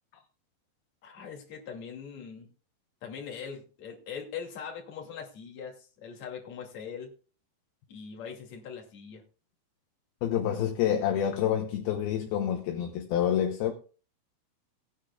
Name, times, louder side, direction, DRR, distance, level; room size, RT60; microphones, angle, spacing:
voice 1, 1.0-2.5 3.0-7.1 7.9-9.2, left 6 dB, 45° left, 3.4 m, -41 dB
voice 2, 10.2-13.7, left 10 dB, 70° left, 2.6 m, -28 dB
20.0 x 9.9 x 2.4 m
omnidirectional pair, 5.0 m